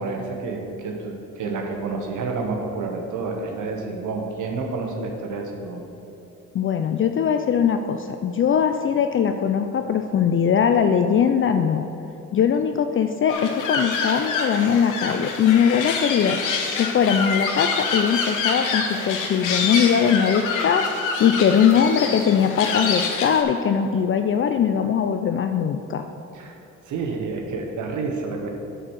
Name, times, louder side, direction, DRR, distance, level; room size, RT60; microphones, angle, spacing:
voice 1, 0.0-5.8 26.3-26.5 26.9-28.5, right 3 dB, 80° right, 2 dB, 1.2 m, -29 dB
voice 2, 6.5-11.9 12.3-16.4 16.8-26.0, left 7 dB, 45° left, 7 dB, 0.4 m, -21 dB
sound 1, 13.3-23.4, left 4 dB, 90° left, 1.1 m, -26 dB
9.8 x 4.6 x 6.3 m, 3.0 s
cardioid pair, 90°, 30 cm